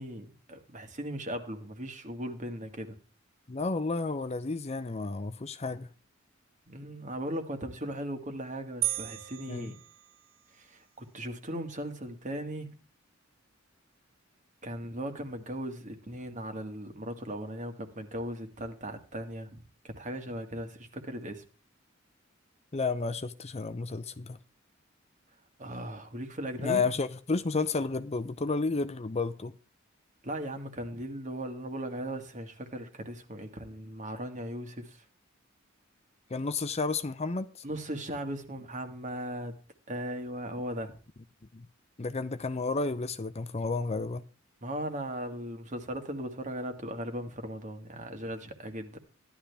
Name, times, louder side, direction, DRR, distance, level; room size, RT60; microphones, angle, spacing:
voice 1, 0.0-3.0 6.7-9.8 10.5-12.7 14.6-21.4 25.6-26.9 30.2-35.0 37.6-39.6 39.9-41.0 44.6-49.0, right 1 dB, 40° right, 2.0 m, -38 dB
voice 2, 3.5-5.9 9.5-9.7 22.7-24.4 26.6-29.5 36.3-37.5 41.5-41.7 42.0-44.2, left 3 dB, 30° left, 0.7 m, -31 dB
sound 1, 8.8-10.6, right 16 dB, 80° right, 0.7 m, -35 dB
15.5 x 11.5 x 3.5 m
head